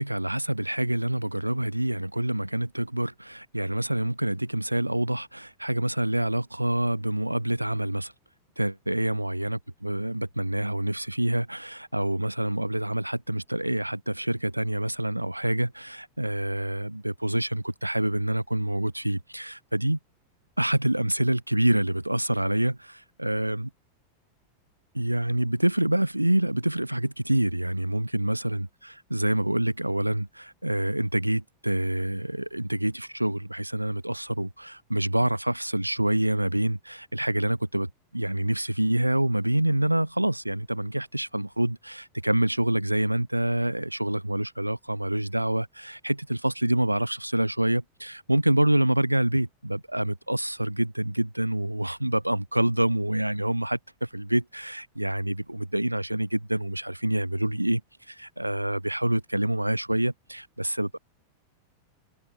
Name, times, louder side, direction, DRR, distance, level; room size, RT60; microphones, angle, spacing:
voice 1, 0.0-8.1 8.6-20.0 20.6-23.7 24.9-28.7 29.1-57.8 58.1-61.0, right 1 dB, 85° right, 0.9 m, -27 dB
figure-of-eight pair, 90°, 0 cm